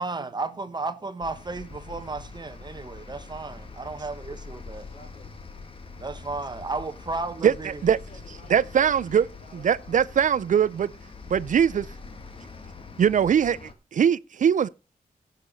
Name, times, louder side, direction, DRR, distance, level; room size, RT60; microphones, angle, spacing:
voice 1, 0.0-4.9 6.0-7.8, right 3 dB, 30° right, 1.0 m, -33 dB
sound 1, 1.2-13.7, left 4 dB, 35° left, 1.5 m, -43 dB
voice 2, 4.8-5.3 7.8-9.9, left 2 dB, 60° left, 4.7 m, -52 dB
voice 3, 7.4-8.0 8.5-9.2 9.6-10.9 11.3-11.9 13.0-14.7, right 8 dB, 60° right, 0.4 m, -21 dB
15.5 x 6.7 x 4.0 m
wide cardioid pair, 115°, 15 cm